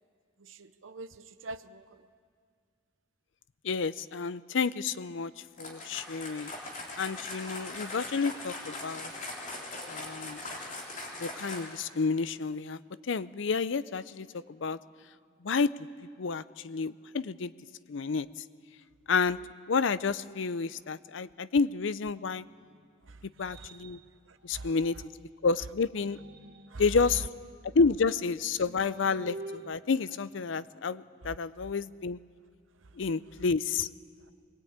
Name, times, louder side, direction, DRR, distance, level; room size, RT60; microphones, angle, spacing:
voice 1, 0.4-2.0 23.1-23.2 23.5-23.7 24.3-24.7 26.7-26.8, right 2 dB, 75° right, 0.7 m, -45 dB
voice 2, 3.6-5.3 5.6-6.5 7.0-9.1 9.9-10.4 11.2-12.8 13.1-14.8 15.4-15.7 16.2-17.5 17.9-18.3 19.1-19.4 19.7-22.5 23.4-24.0 24.4-25.1 25.4-26.2 26.8-27.3 27.7-32.2 32.9-33.9, left 4 dB, 70° left, 0.5 m, -30 dB
sound 1, 5.5-11.9, left 2 dB, 40° left, 3.4 m, -40 dB
sound 2, 22.2-25.3 25.8-31.0, right 1 dB, 55° right, 1.4 m, -50 dB
22.0 x 20.0 x 8.8 m
head